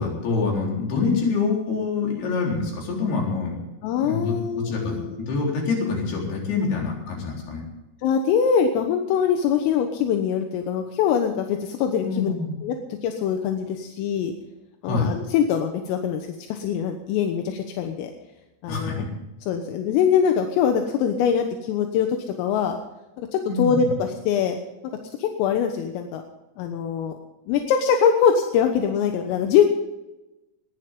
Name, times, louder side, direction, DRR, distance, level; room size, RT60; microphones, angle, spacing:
voice 1, 0.0-3.6 4.0-7.6 12.0-12.5 14.8-15.1 18.7-19.1 23.5-23.9, left 4 dB, 50° left, -1 dB, 5.8 m, -26 dB
voice 2, 0.9-1.3 3.8-5.2 8.0-12.3 12.6-14.3 14.8-18.1 18.6-19.0 19.5-22.8 23.2-24.6 25.2-26.2 26.6-27.2 27.5-29.8, left 7 dB, 80° left, 5 dB, 3.7 m, -23 dB
20.0 x 15.0 x 3.8 m, 0.99 s
omnidirectional pair, 5.9 m